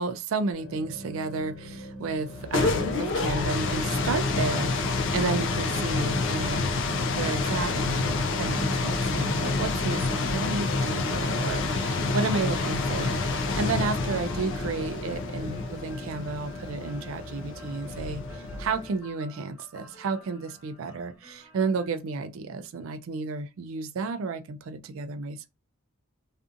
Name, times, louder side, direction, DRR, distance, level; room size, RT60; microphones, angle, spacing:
voice 1, 0.0-6.7 7.1-25.5, right 4 dB, 65° right, 0.4 m, -32 dB
sound 1, 0.5-15.8, equal, 75° left, 1.1 m, -43 dB
sound 2, 2.2-19.0, left 3 dB, 60° left, 0.3 m, -28 dB
sound 3, 9.0-21.9, equal, 15° right, 1.2 m, -52 dB
2.5 x 2.5 x 2.4 m
head